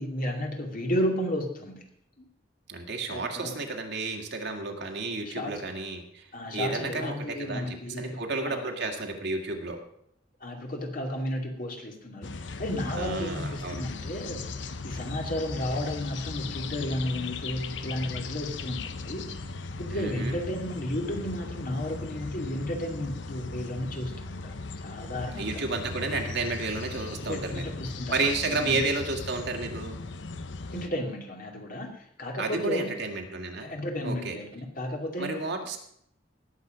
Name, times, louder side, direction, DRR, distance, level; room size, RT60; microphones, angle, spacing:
voice 1, 0.0-1.8 2.2-2.3 3.1-3.6 5.2-5.5 6.3-8.6 10.4-19.3 19.8-25.6 27.2-28.1 28.4-28.8 30.7-32.9 33.6-35.4, left 1 dB, 50° left, 2 dB, 2.6 m, -33 dB
voice 2, 2.7-6.3 6.5-9.8 13.0-13.8 19.9-20.4 25.3-27.6 28.1-30.0 32.4-33.7 34.0-34.4 35.2-35.8, right 3 dB, 65° right, 3 dB, 2.1 m, -31 dB
sound 1, 12.2-30.9, left 3 dB, 80° left, 0.8 m, -38 dB
18.5 x 7.8 x 5.1 m, 0.72 s
head